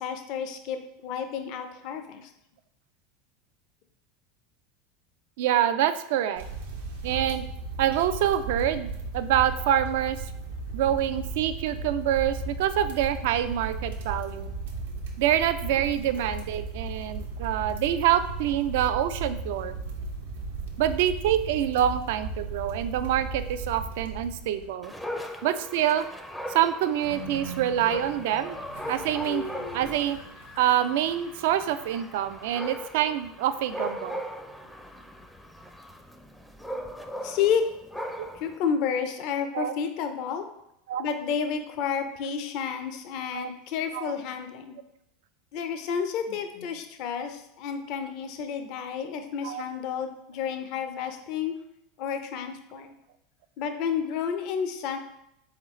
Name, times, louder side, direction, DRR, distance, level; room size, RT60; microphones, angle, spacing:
voice 1, 0.0-2.3 37.2-37.6 38.4-40.5 41.0-44.8 45.5-51.5 52.0-52.9 53.6-55.0, left 7 dB, 60° left, 7 dB, 0.5 m, -30 dB
voice 2, 5.4-6.4 7.0-7.5 7.8-10.2 10.7-14.5 15.2-19.7 20.8-24.9 25.4-26.1 26.5-28.6 28.9-29.4 29.7-30.2 30.6-34.2 38.2-38.3 39.5-39.7 40.9-41.0 43.3-43.5 43.9-44.1 49.4-49.7, right 11 dB, 75° right, 11 dB, 0.3 m, -26 dB
sound 1, 6.4-24.7, right 3 dB, 90° right, 0.7 m, -36 dB
Dog, 24.8-38.6, equal, 5° left, 0.4 m, -39 dB
Train, 27.0-32.3, left 1 dB, 90° left, 1.5 m, -41 dB
3.9 x 3.9 x 3.1 m, 0.82 s
supercardioid pair, 105°, 0 cm